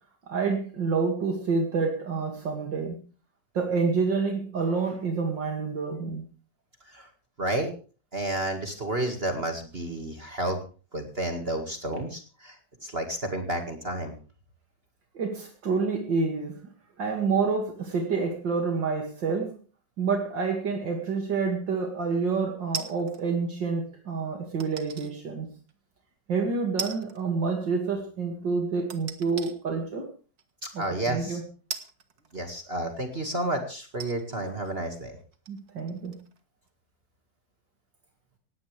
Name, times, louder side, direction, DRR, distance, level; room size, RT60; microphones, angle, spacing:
voice 1, 0.3-3.0 3.5-6.2 15.1-16.6 17.0-19.5 20.0-25.5 26.3-30.1 30.7-31.4 35.5-36.2, right 4 dB, 75° right, 3 dB, 3.0 m, -28 dB
voice 2, 7.4-7.7 8.1-10.6 10.9-14.1 30.6-31.4 32.3-35.2, right 1 dB, 30° right, 5 dB, 2.2 m, -31 dB
sound 1, 22.7-23.3 24.6-25.1 25.7-25.8 26.8-27.3 27.5-27.6 28.9-29.5 30.4-30.5 31.7-32.8 33.4-33.5 33.9-36.4 36.7-36.8, right 6 dB, 55° right, 2.0 m, -38 dB
19.0 x 16.5 x 3.4 m, 0.37 s
omnidirectional pair, 2.0 m